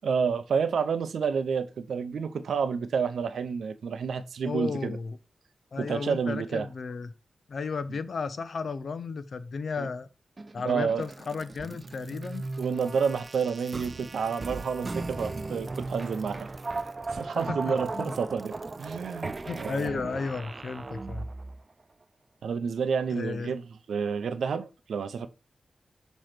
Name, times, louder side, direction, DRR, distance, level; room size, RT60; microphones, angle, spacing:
voice 1, 0.0-5.0 5.8-6.7 9.8-9.9 10.6-11.0 12.6-16.5 17.1-20.1 22.4-23.6 23.9-25.3, right 6 dB, 85° right, 0.6 m, -29 dB
voice 2, 4.4-5.2 5.7-7.1 7.5-10.1 10.5-12.4 17.5-18.1 19.5-21.3 23.1-23.5, left 4 dB, 70° left, 0.7 m, -34 dB
sound 1, 10.4-21.6, right 3 dB, 40° right, 0.3 m, -37 dB
6.7 x 3.1 x 5.8 m
cardioid pair, 50°, 0 cm